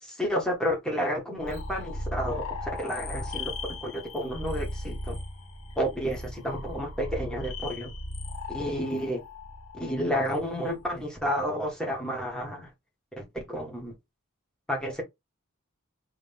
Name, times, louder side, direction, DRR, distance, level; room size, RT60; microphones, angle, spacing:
voice 1, 0.0-3.5 3.8-5.2 5.8-7.9 8.5-9.2 9.7-12.7 13.2-13.9 14.7-15.0, equal, 5° left, 1.8 m, -31 dB
sound 1, 1.4-11.0, left 2 dB, 70° left, 1.7 m, -37 dB
3.6 x 3.4 x 3.5 m
head